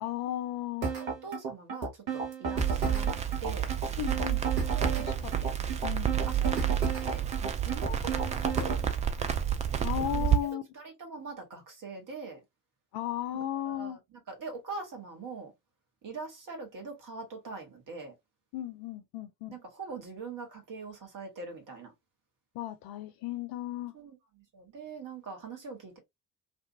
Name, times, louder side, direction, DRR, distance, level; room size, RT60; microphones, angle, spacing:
voice 1, 0.0-0.9 4.0-4.4 5.1-5.5 5.8-6.3 9.8-10.6 12.9-14.0 18.5-19.6 22.5-23.9, left 12 dB, 45° left, 0.6 m, -35 dB
sound 1, 0.8-8.8, right 4 dB, 70° right, 1.1 m, -33 dB
voice 2, 1.0-3.7 4.7-5.2 6.3-9.4 10.0-12.4 13.3-15.5 16.0-18.1 19.5-21.9 23.9-26.0, right 4 dB, 40° right, 1.7 m, -43 dB
Crackle, 2.5-10.4, right 9 dB, 15° right, 0.3 m, -30 dB
3.3 x 2.5 x 2.7 m
figure-of-eight pair, 50°, 50 cm